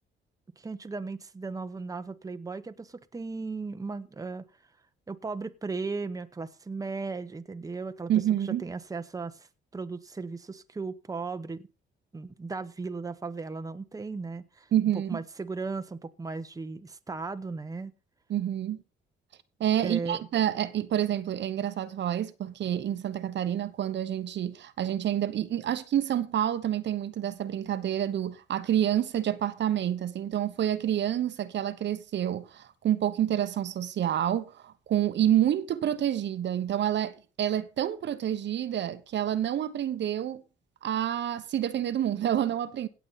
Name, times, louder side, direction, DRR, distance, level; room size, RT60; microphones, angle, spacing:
voice 1, 0.6-4.4 5.1-8.1 8.4-9.5 9.7-11.7 12.1-14.7 15.1-17.9 19.8-20.2, right 4 dB, 15° right, 0.9 m, -36 dB
voice 2, 8.1-8.6 14.7-15.2 18.3-18.8 19.6-40.4 40.8-42.9, right 11 dB, 65° right, 1.1 m, -28 dB
17.5 x 7.1 x 4.1 m
cardioid pair, 90°, 20 cm